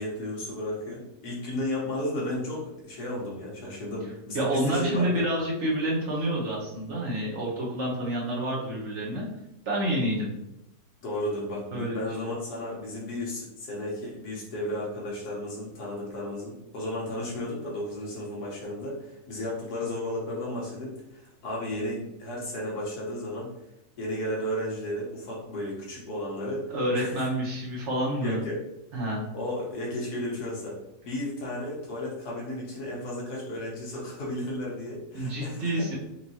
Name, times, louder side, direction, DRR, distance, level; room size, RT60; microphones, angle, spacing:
voice 1, 0.0-5.2 11.0-23.5 24.0-27.3 28.2-28.6 29.3-30.8 31.0-35.9, left 1 dB, 85° left, -3 dB, 1.7 m, -33 dB
voice 2, 4.3-9.3 9.7-10.3 11.7-12.0 26.7-28.4 28.9-29.2 35.1-35.9, right 1 dB, 55° right, -4 dB, 1.1 m, -28 dB
4.5 x 2.9 x 2.8 m, 0.86 s
omnidirectional pair, 1.6 m